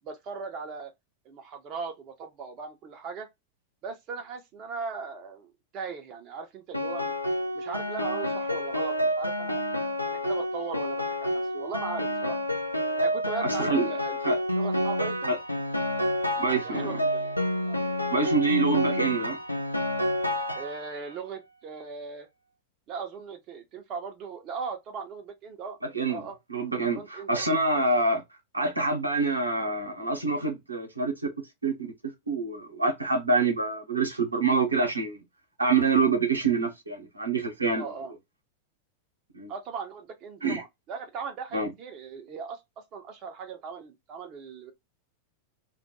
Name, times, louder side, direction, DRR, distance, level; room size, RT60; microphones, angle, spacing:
voice 1, 0.0-0.9 1.3-3.3 3.8-7.1 7.5-9.6 10.1-12.4 13.0-14.2 14.5-15.3 16.6-17.3 17.6-17.8 20.6-22.3 22.9-25.8 26.1-26.4 26.9-27.5 37.7-38.1 39.5-44.7, right 5 dB, 35° right, 0.5 m, -38 dB
Piano, 6.7-21.1, equal, 85° left, 0.4 m, -29 dB
voice 2, 13.4-13.9 14.2-14.4 15.3-15.4 16.4-17.0 18.1-19.4 25.9-26.2 26.5-28.2 28.5-31.1 31.6-31.7 32.3-35.2 35.6-37.9 39.3-39.5 40.4-40.6 41.5-41.7, right 3 dB, 80° right, 0.7 m, -26 dB
2.2 x 2.1 x 2.7 m
figure-of-eight pair, 90°, 0 cm